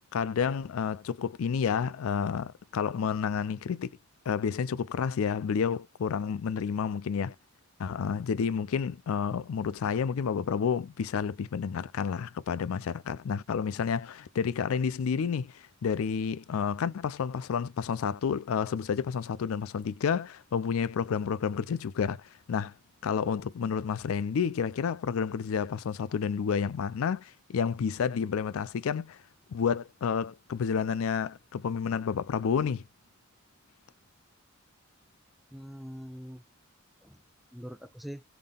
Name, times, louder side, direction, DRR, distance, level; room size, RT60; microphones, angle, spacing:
voice 1, 0.1-3.9 4.3-7.3 7.8-22.2 22.5-22.7 23.0-29.2 29.5-32.8, left 6 dB, 80° left, 0.4 m, -30 dB
voice 2, 6.5-7.0 35.5-36.4 37.0-37.2 37.5-38.2, equal, ahead, 0.4 m, -44 dB
3.7 x 3.5 x 2.4 m
head